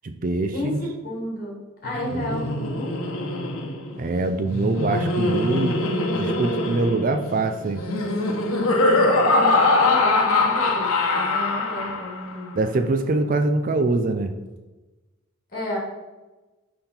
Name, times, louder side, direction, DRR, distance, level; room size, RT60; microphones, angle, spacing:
voice 1, 0.0-0.8 2.1-2.2 4.0-5.8 6.1-7.8 12.5-14.3, right 3 dB, 40° right, 8 dB, 0.4 m, -24 dB
voice 2, 1.0-2.9 9.2-12.8 15.5-15.8, left 1 dB, 40° left, -3 dB, 2.3 m, -32 dB
Laughter, 1.8-12.3, left 2 dB, 90° left, 0.9 m, -23 dB
5.7 x 5.3 x 4.3 m, 1.2 s
head